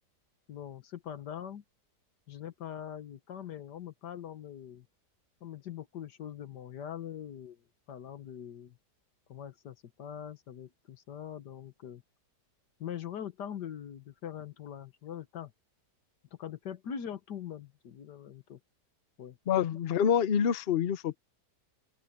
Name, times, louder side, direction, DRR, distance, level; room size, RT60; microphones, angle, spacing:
voice 1, 0.5-1.6 2.3-4.9 5.4-7.6 7.9-8.8 9.3-12.0 12.8-15.5 16.4-18.6 19.2-19.4, left 9 dB, 85° left, 1.8 m, -42 dB
voice 2, 19.5-21.2, left 8 dB, 55° left, 0.7 m, -27 dB
open air
omnidirectional pair, 1.8 m